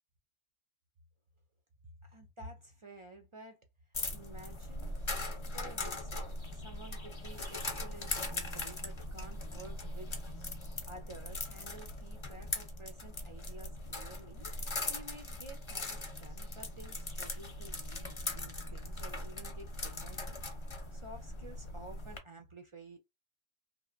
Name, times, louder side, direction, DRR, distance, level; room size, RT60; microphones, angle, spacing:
voice 1, 2.0-3.6 4.1-5.0 5.5-10.1 10.8-23.0, right 2 dB, 50° right, 0.4 m, -52 dB
sound 1, 3.9-22.2, left 2 dB, 35° left, 0.6 m, -40 dB
2.8 x 2.0 x 2.4 m
omnidirectional pair, 1.1 m